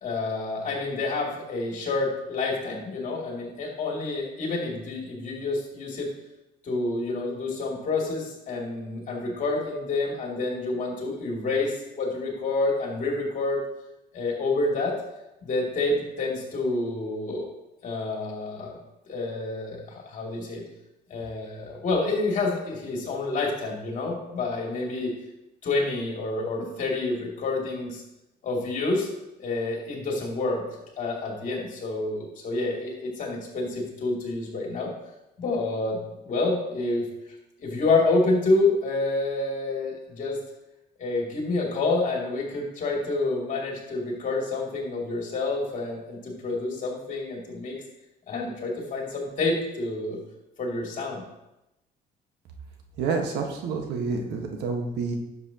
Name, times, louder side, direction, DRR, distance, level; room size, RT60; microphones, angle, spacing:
voice 1, 0.0-6.1 6.6-13.6 14.1-15.0 15.4-17.5 17.8-18.7 19.1-20.6 21.1-25.1 25.6-28.0 28.4-29.1 29.4-30.6 31.0-34.9 35.4-37.1 37.6-40.4 41.0-47.8 48.3-50.2 50.6-51.2, left 3 dB, 50° left, -1 dB, 2.7 m, -28 dB
voice 2, 53.0-55.2, right 4 dB, 80° right, 2 dB, 1.5 m, -28 dB
10.0 x 7.1 x 2.9 m, 0.92 s
cardioid pair, 110°, 17 cm